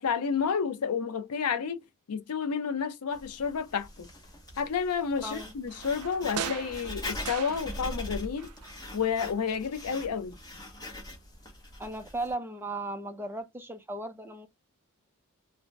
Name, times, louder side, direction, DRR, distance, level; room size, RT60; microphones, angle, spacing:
voice 1, 0.0-4.1 4.6-8.5 8.9-10.4, left 6 dB, 80° left, 0.5 m, -30 dB
Writing, 3.1-12.3, left 1 dB, 20° left, 0.9 m, -42 dB
voice 2, 5.2-5.5 11.8-14.5, right 2 dB, 10° right, 0.5 m, -36 dB
sound 1, 5.7-8.1 8.4-9.5 9.8-9.9, right 8 dB, 80° right, 0.5 m, -40 dB
2.6 x 2.1 x 3.2 m
head